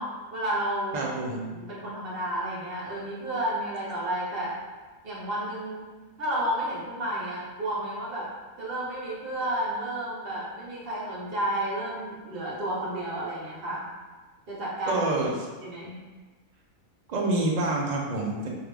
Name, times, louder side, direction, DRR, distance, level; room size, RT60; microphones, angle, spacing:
voice 1, 0.0-1.1 1.5-4.6 5.0-5.9 6.2-8.3 8.6-13.9 14.5-15.0 15.6-16.0, right 1 dB, 45° right, -6 dB, 1.0 m, -31 dB
voice 2, 0.9-1.4 14.9-15.3 17.1-18.5, right 2 dB, 60° right, -2 dB, 0.4 m, -27 dB
3.5 x 2.7 x 3.3 m, 1.3 s
omnidirectional pair, 1.5 m